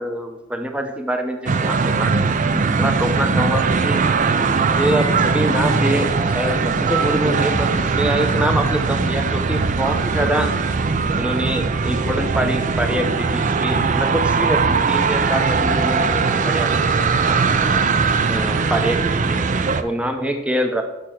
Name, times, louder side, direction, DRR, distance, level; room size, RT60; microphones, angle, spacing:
voice 1, 0.0-4.1 4.6-6.1 6.3-10.5 11.2-17.4 18.3-19.4 19.8-20.8, right 1 dB, 5° right, 5 dB, 0.7 m, -25 dB
sound 1, 1.5-19.8, right 4 dB, 35° right, 0.4 m, -20 dB
6.7 x 6.4 x 5.7 m, 0.98 s
head